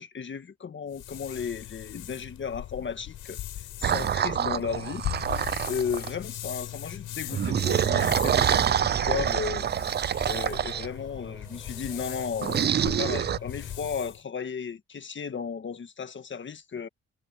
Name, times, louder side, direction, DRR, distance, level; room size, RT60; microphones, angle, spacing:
voice 1, 0.0-5.0 5.6-9.7 10.2-16.9, left 6 dB, 40° left, 1.6 m, -35 dB
sound 1, 0.9-14.2, left 13 dB, 80° left, 6.1 m, -39 dB
sound 2, 3.8-6.2 7.3-10.9 12.4-13.4, right 9 dB, 35° right, 0.4 m, -26 dB
sound 3, 7.3-13.9, right 2 dB, 15° right, 7.8 m, -49 dB
cardioid pair, 90°, 30 cm